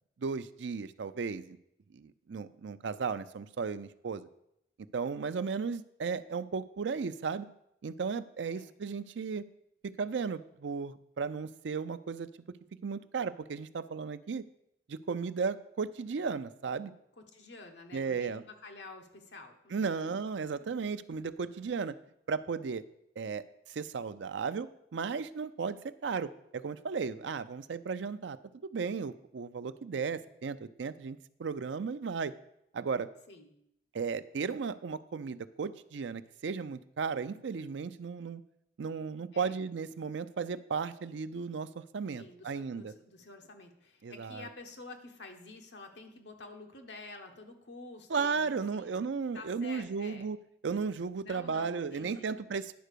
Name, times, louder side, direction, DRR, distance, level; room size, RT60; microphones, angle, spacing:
voice 1, 0.2-1.6 1.9-4.3 4.9-7.5 7.8-9.4 9.8-12.3 12.8-14.4 14.9-16.9 17.9-18.4 19.7-21.9 22.3-22.8 23.2-32.3 32.7-33.1 33.9-38.4 38.8-42.9 44.0-44.5 48.1-50.4 50.6-52.7, right 5 dB, 85° right, 13 dB, 0.5 m, -35 dB
voice 2, 17.2-20.2 33.3-33.6 39.3-39.6 42.2-50.3 51.2-52.3, left 3 dB, 75° left, 4 dB, 1.2 m, -49 dB
10.0 x 4.5 x 6.7 m, 0.78 s
head